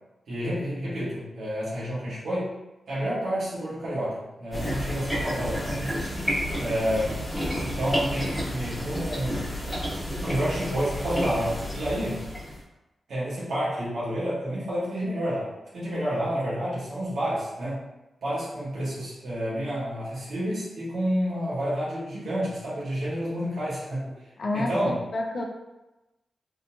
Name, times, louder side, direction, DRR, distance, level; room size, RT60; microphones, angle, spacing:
voice 1, 0.3-2.5 2.9-6.1 6.6-7.2 7.6-9.5 10.2-12.2 13.1-17.8 18.2-24.1 24.5-24.9, equal, 85° right, -9 dB, 1.3 m, -29 dB
sound 1, 4.5-12.6, equal, 5° left, 1.2 m, -31 dB
voice 2, 24.4-25.4, left 2 dB, 45° left, 0 dB, 0.4 m, -29 dB
3.7 x 2.8 x 2.3 m, 1.0 s
wide cardioid pair, 165°, 0 cm